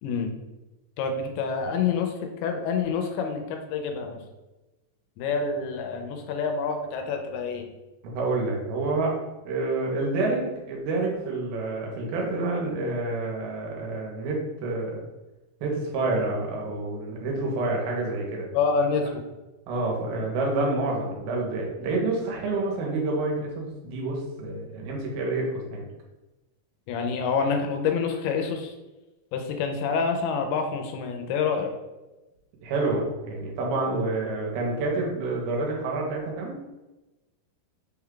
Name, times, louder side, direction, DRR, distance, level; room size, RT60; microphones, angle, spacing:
voice 1, 1.0-2.1 2.4-4.2 5.2-7.7 18.5-19.1 26.9-28.7 29.3-31.7, left 5 dB, 85° left, 4 dB, 2.6 m, -27 dB
voice 2, 8.1-9.1 9.5-15.0 15.6-18.5 19.7-25.9 32.6-36.6, right 2 dB, 80° right, -1 dB, 2.7 m, -28 dB
6.0 x 2.3 x 3.6 m, 1.1 s
omnidirectional pair, 4.5 m